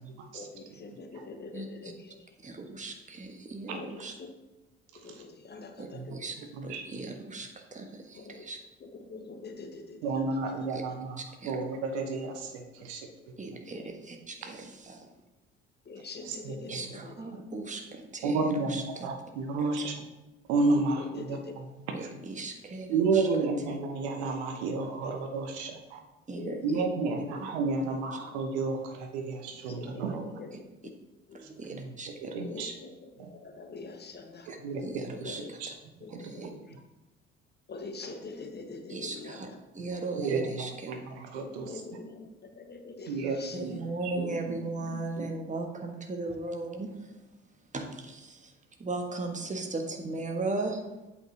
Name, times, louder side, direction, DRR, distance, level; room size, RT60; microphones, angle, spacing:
voice 1, 0.3-2.3 3.7-4.3 4.9-6.3 8.1-8.4 8.8-11.0 13.4-13.9 15.8-17.4 20.7-21.5 24.5-24.9 26.4-26.8 28.3-28.4 29.3-30.9 31.3-31.4 32.4-34.5 35.2-35.5 36.0-36.8 37.7-39.6 41.3-43.7, left 3 dB, 30° left, 5 dB, 1.1 m, -45 dB
voice 2, 2.4-4.1 5.8-6.3 6.6-8.6 10.7-10.8 11.4-11.5 13.4-15.1 16.7-19.1 19.8-19.9 21.9-23.3 23.7-23.8 26.3-26.9 27.3-27.5 30.5-30.6 31.3-32.4 34.5-34.6 34.8-35.4 36.2-36.5 38.9-39.5 39.7-41.0 43.5-47.1 47.7-48.5 48.8-50.8, right 3 dB, 20° right, 3 dB, 1.4 m, -37 dB
voice 3, 10.0-11.2 11.4-13.1 16.3-16.5 18.2-18.7 19.0-19.9 20.5-21.4 22.0-22.1 22.9-26.0 26.6-30.2 31.7-31.8 32.2-32.7 34.6-34.8 35.6-35.7 36.2-36.5 40.2-41.7 43.1-43.7 44.0-44.4 44.9-45.3, right 3 dB, 65° right, 4 dB, 1.1 m, -31 dB
8.3 x 8.1 x 2.9 m, 1.0 s
figure-of-eight pair, 50°, 35 cm